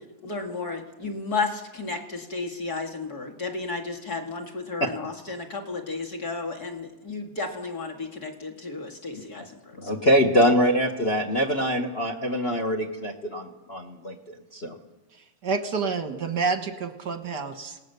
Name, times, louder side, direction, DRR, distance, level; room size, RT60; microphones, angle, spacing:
voice 1, 0.2-10.0 10.4-10.5, left 3 dB, 35° left, 0 dB, 2.2 m, -33 dB
voice 2, 9.8-14.2 14.5-14.7, equal, 65° left, 3 dB, 0.6 m, -24 dB
voice 3, 15.1-17.8, right 4 dB, 55° right, 7 dB, 1.2 m, -29 dB
27.5 x 18.5 x 6.8 m, 1.1 s
omnidirectional pair, 3.4 m